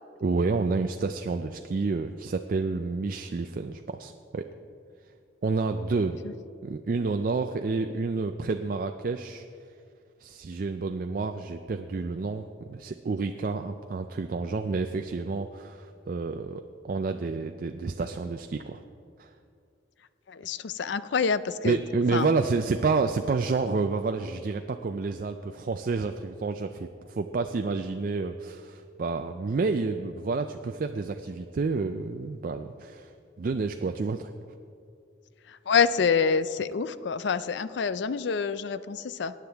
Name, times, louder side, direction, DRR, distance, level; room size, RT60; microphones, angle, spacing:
voice 1, 0.2-4.5 5.4-6.2 6.6-9.4 10.2-18.8 19.2-19.3 21.6-33.1 33.4-34.3, right 4 dB, 45° right, 7 dB, 0.3 m, -29 dB
voice 2, 20.3-21.8 22.1-22.3 35.5-39.3, left 6 dB, 65° left, 15 dB, 0.4 m, -27 dB
18.5 x 9.7 x 3.4 m, 2.5 s
head